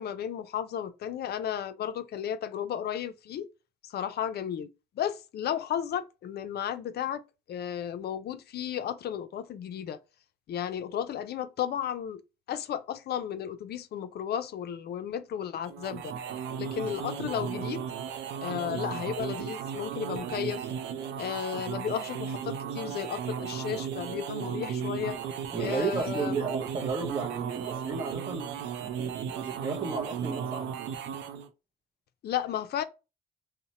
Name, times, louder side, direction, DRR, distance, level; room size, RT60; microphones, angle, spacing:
voice 1, 0.0-3.5 3.8-4.7 5.0-7.2 7.5-10.0 10.5-12.2 12.5-16.1 16.6-17.9 18.4-20.7 21.2-25.2 25.6-26.4 32.2-32.8, left 9 dB, 65° left, 0.4 m, -33 dB
sound 1, 15.6-31.5, right 8 dB, 85° right, 0.4 m, -35 dB
voice 2, 25.5-28.5 28.9-30.7, right 5 dB, 30° right, 0.6 m, -33 dB
2.7 x 2.1 x 2.7 m
supercardioid pair, 65°, 18 cm